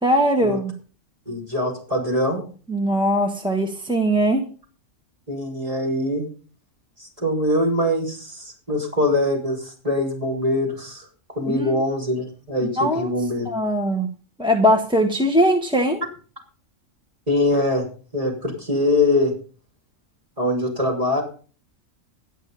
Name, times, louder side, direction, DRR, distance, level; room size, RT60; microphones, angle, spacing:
voice 1, 0.0-0.7 2.7-4.4 11.5-11.8 12.6-13.1 13.4-14.1 14.4-16.0, equal, 5° right, 1 dB, 1.4 m, -20 dB
voice 2, 1.3-2.4 5.3-6.2 7.0-11.1 11.4-13.5 17.3-17.8 18.1-19.3 20.4-21.2, left 1 dB, 25° right, -1 dB, 6.0 m, -23 dB
12.0 x 11.0 x 5.6 m, 0.39 s
omnidirectional pair, 1.3 m